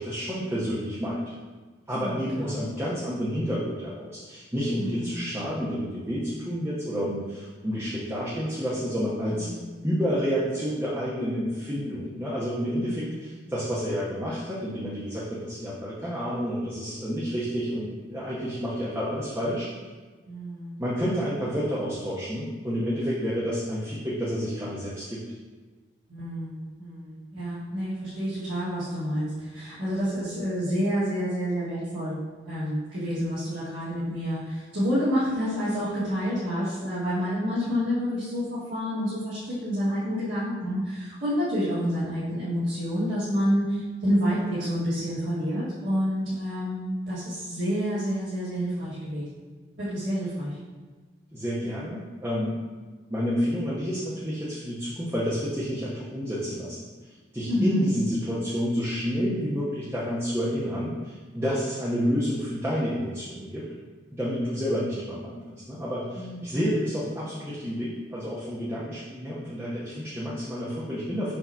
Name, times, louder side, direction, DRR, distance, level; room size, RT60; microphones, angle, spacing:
voice 1, 0.0-1.3 1.9-9.5 9.8-19.7 20.8-25.2 51.3-52.6 53.1-63.7 64.1-65.4 65.7-71.4, equal, 15° right, -8 dB, 0.8 m, -29 dB
voice 2, 1.9-2.6 4.8-5.3 9.3-9.7 12.8-13.3 20.3-20.8 26.1-32.2 32.4-49.4 49.8-50.6 57.4-57.8 66.1-66.6, equal, 80° right, -12 dB, 1.7 m, -29 dB
5.9 x 2.9 x 5.5 m, 1.4 s
head